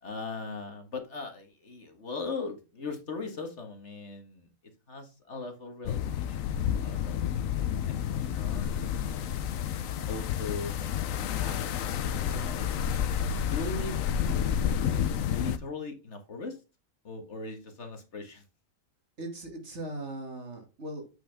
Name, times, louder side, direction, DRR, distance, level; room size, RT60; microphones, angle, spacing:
voice 1, 0.0-4.5 4.9-9.3 10.0-10.8 11.1-11.5 11.8-12.7 13.4-14.0 15.3-16.6 17.0-18.5, left 3 dB, 55° left, 5 dB, 2.0 m, -40 dB
sound 1, 5.9-15.6, left 9 dB, 75° left, 1.1 m, -30 dB
voice 2, 19.2-21.2, right 1 dB, 55° right, 4 dB, 2.5 m, -39 dB
8.2 x 6.0 x 3.5 m, 0.28 s
omnidirectional pair, 1.4 m